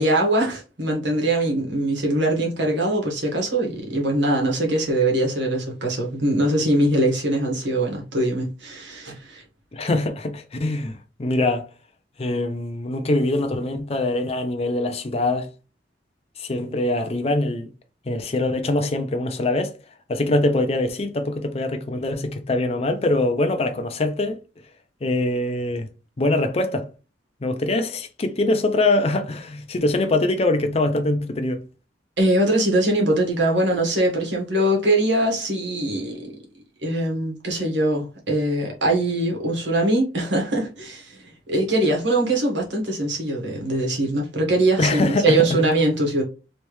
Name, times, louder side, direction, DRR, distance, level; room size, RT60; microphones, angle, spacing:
voice 1, 0.0-9.4 32.2-36.3 36.8-46.2, right 1 dB, 90° right, 1.5 m, -22 dB
voice 2, 9.7-11.7 12.2-15.5 16.4-17.7 18.1-19.7 20.1-24.4 25.0-25.9 26.2-26.9 27.4-31.6 44.8-45.7, left 2 dB, 35° left, 0.5 m, -23 dB
3.2 x 3.1 x 3.1 m
head